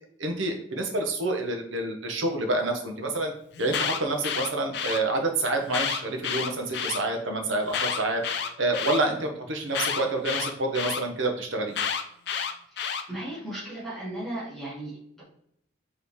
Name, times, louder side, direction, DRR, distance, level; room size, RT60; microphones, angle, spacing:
voice 1, 0.2-3.3 3.6-8.2 8.6-11.7, right 2 dB, 85° right, 3 dB, 0.9 m, -28 dB
Alarm, 3.5-5.0 5.7-7.0 7.7-9.0 9.7-11.0 11.7-13.0, left 7 dB, 60° left, 0.4 m, -29 dB
voice 2, 12.7-15.2, right 1 dB, ahead, -10 dB, 1.7 m, -36 dB
5.3 x 3.2 x 3.2 m, 0.72 s
head